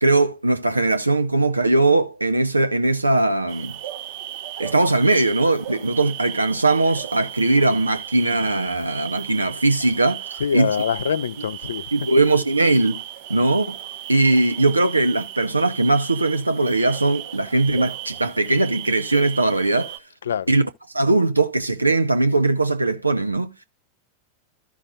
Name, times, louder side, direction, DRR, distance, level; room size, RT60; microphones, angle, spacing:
voice 1, 0.0-3.8 4.6-10.3 10.5-10.7 11.9-13.0 13.3-13.8 14.1-20.0 20.5-20.7 20.9-23.5, right 2 dB, 85° right, 0.8 m, -20 dB
sound 1, 3.5-20.0, right 12 dB, 50° right, 0.9 m, -36 dB
voice 2, 10.4-11.8 20.2-20.5, left 7 dB, 65° left, 0.5 m, -24 dB
14.0 x 5.8 x 2.5 m
figure-of-eight pair, 90°, 0 cm